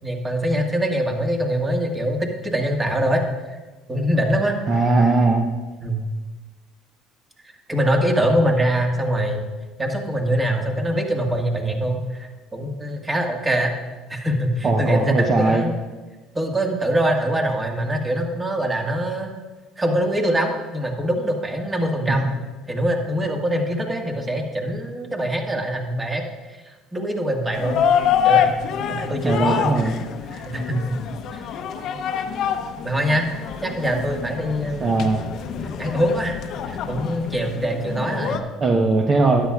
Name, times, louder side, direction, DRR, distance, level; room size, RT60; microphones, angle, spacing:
voice 1, 0.0-3.2 3.9-4.6 5.8-6.1 7.7-9.5 9.8-13.7 14.1-15.7 16.4-19.3 19.8-22.3 22.7-26.2 26.7-27.8 28.2-28.6 28.9-30.0 30.3-30.9 31.3-31.5 32.8-33.3 33.6-35.1 35.8-38.4, equal, 15° right, 2 dB, 1.7 m, -23 dB
voice 2, 4.7-5.5 14.6-15.6 22.1-22.2 29.2-30.0 34.8-35.2 37.9-38.2 38.6-39.5, right 3 dB, 40° right, 2 dB, 0.9 m, -19 dB
sound 1, 27.5-38.4, left 8 dB, 55° left, 0.7 m, -26 dB
12.5 x 10.5 x 2.4 m, 1.3 s
supercardioid pair, 90°, 0 cm